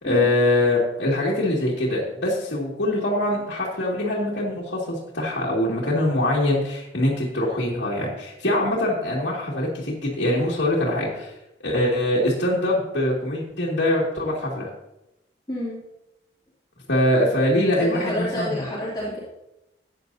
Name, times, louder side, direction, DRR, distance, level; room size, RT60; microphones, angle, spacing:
voice 1, 0.0-11.3 11.6-14.7 16.9-18.6, left 1 dB, 80° left, -7 dB, 2.2 m, -23 dB
voice 2, 15.5-15.8 17.8-19.2, left 1 dB, 25° left, -8 dB, 2.6 m, -29 dB
14.0 x 9.4 x 2.7 m, 0.89 s
head